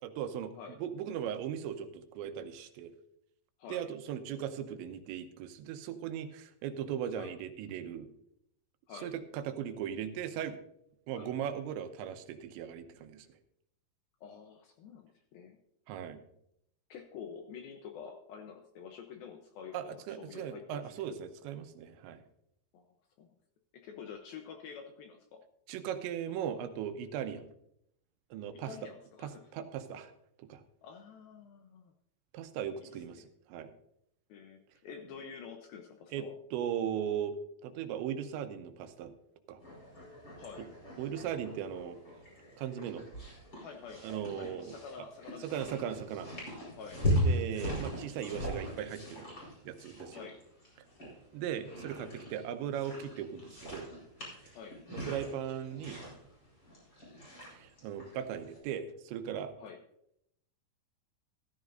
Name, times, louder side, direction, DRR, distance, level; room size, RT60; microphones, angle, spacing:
voice 1, 0.0-0.5 0.8-2.9 3.7-8.1 9.0-10.6 11.1-13.3 15.9-16.2 19.7-22.2 25.7-27.5 28.3-28.7 29.2-30.1 30.4-30.6 32.3-33.7 36.1-37.3 37.6-39.1 39.5-39.6 41.0-42.0 42.6-43.1 44.0-45.1 45.4-46.3 47.1-49.3 49.7-50.2 51.0-53.9 54.9-56.0 57.5-59.5, right 9 dB, 90° right, 9 dB, 3.1 m, -38 dB
voice 2, 14.2-15.6 16.9-20.8 22.7-22.9 23.2-23.3 23.7-25.4 28.5-29.5 30.8-31.9 32.8-33.0 34.3-36.3 40.4-40.7 43.6-44.1 44.4-45.8 46.8-47.0 50.1-50.4 54.5-54.8 59.6-59.8, left 6 dB, 75° left, 4 dB, 2.2 m, -48 dB
sound 1, 39.6-58.6, equal, 20° left, 4.5 m, -39 dB
14.5 x 13.5 x 2.6 m, 0.75 s
omnidirectional pair, 5.2 m